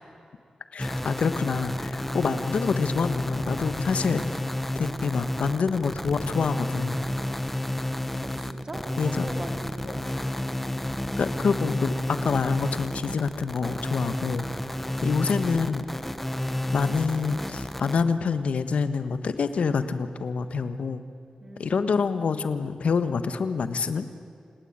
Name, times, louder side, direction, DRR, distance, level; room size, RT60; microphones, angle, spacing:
voice 1, 0.7-4.5 4.7-7.0 9.0-9.3 9.8-10.1 11.2-14.4 15.0-15.9 16.7-21.0 21.6-24.1, left 5 dB, 75° left, 10 dB, 1.4 m, -27 dB
sound 1, 0.8-18.0, left 1 dB, 10° left, 0.9 m, -31 dB
voice 2, 8.2-10.0 14.7-15.0 21.4-22.1, right 2 dB, 30° right, 4 dB, 2.7 m, -41 dB
28.5 x 18.5 x 8.9 m, 2.4 s
wide cardioid pair, 160°, 2 cm